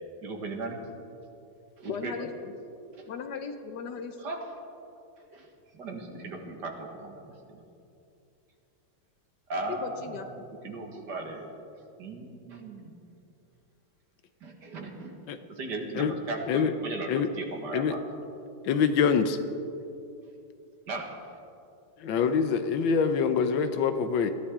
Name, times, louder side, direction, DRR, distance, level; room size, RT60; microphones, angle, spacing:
voice 1, 0.2-0.8 1.8-2.3 3.0-3.1 4.2-4.5 5.2-7.7 9.5-11.5 12.0-12.9 14.4-15.2 15.5-18.0 20.9-21.1, right 2 dB, 60° right, 2 dB, 2.1 m, -37 dB
voice 2, 1.9-2.3 3.1-4.2 9.7-10.4, left 6 dB, 65° left, 7 dB, 1.3 m, -37 dB
voice 3, 18.6-19.4 22.0-24.3, left 6 dB, 80° left, 9 dB, 1.6 m, -25 dB
21.5 x 14.5 x 3.7 m, 2.7 s
omnidirectional pair, 2.1 m